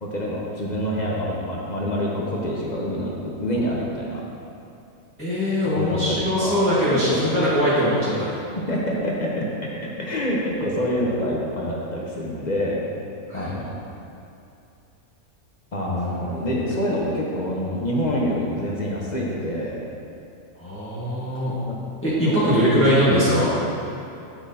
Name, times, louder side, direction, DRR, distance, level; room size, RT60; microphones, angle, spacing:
voice 1, 0.0-4.2 5.6-6.6 6.9-7.3 8.7-9.5 10.0-12.8 13.3-13.7 15.7-19.8 21.6-21.8 22.2-22.9, equal, 40° left, -4 dB, 0.8 m, -26 dB
voice 2, 5.2-8.3 13.3-13.5 16.3-16.4 20.6-21.5 22.0-23.5, equal, 10° left, -11 dB, 1.2 m, -21 dB
8.8 x 6.0 x 2.7 m, 2.6 s
omnidirectional pair, 1.4 m